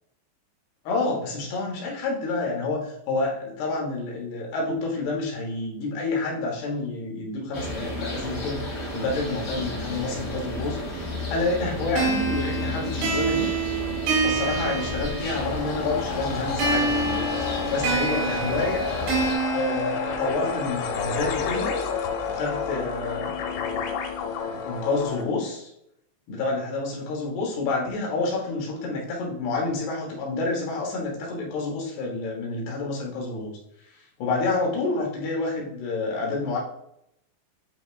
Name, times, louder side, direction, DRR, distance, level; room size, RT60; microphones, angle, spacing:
voice 1, 0.8-8.7 8.9-10.8 11.3-13.6 14.2-17.3 17.7-18.9 19.5-21.8 22.3-23.6 24.4-25.7 26.3-33.6 34.2-36.6, left 3 dB, 70° left, -1 dB, 3.0 m, -28 dB
sound 1, 7.5-19.3, left 1 dB, 40° left, 1.9 m, -33 dB
sound 2, 12.0-15.6 16.6-20.6, right 4 dB, 85° right, 4.9 m, -27 dB
sound 3, 15.3-25.2, left 6 dB, 85° left, 3.5 m, -30 dB
9.1 x 5.2 x 2.5 m, 0.75 s
omnidirectional pair, 5.6 m